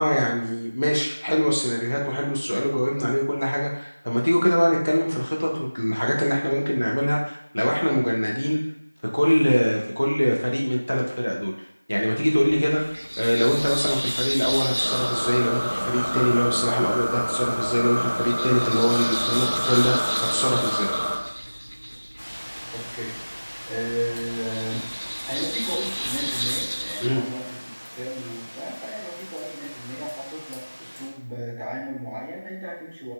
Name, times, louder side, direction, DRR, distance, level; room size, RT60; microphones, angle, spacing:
voice 1, 0.0-8.6 9.1-11.5 11.9-12.8 13.2-20.9 27.0-27.2, equal, 55° left, -2 dB, 0.7 m, -23 dB
sound 1, 12.4-27.1, equal, 85° right, 0.4 m, -33 dB
sound 2, 14.8-21.2, equal, 10° left, 0.8 m, -27 dB
sound 3, 22.2-31.1, equal, 80° left, 1.0 m, -40 dB
voice 2, 22.7-24.9 25.3-27.6 27.9-33.1, equal, 20° right, -7 dB, 0.4 m, -33 dB
2.7 x 2.6 x 2.3 m, 0.80 s
figure-of-eight pair, 180°, 0 cm